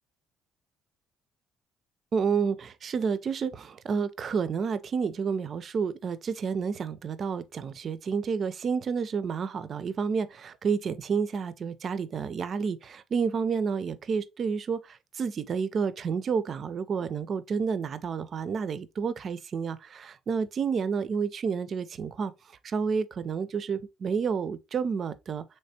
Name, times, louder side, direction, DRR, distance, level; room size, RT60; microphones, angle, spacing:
voice 1, 2.1-22.3 22.6-25.4, right 6 dB, 50° right, 0.4 m, -30 dB
3.3 x 3.1 x 2.7 m
supercardioid pair, 80°, 0 cm